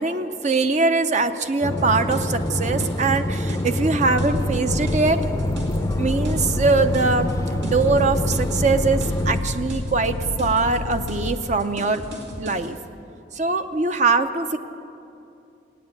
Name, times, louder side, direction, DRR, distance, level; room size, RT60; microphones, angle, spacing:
voice 1, 0.0-5.6 6.0-12.0 12.4-12.8 13.3-14.6, right 3 dB, 40° right, 9 dB, 0.6 m, -22 dB
sound 1, 1.6-9.4, left 1 dB, 15° left, 0.5 m, -26 dB
sound 2, 1.8-12.7, right 1 dB, 80° right, 2.3 m, -38 dB
sound 3, 4.2-11.3, left 2 dB, 90° left, 0.6 m, -30 dB
18.5 x 8.7 x 8.9 m, 2.7 s
head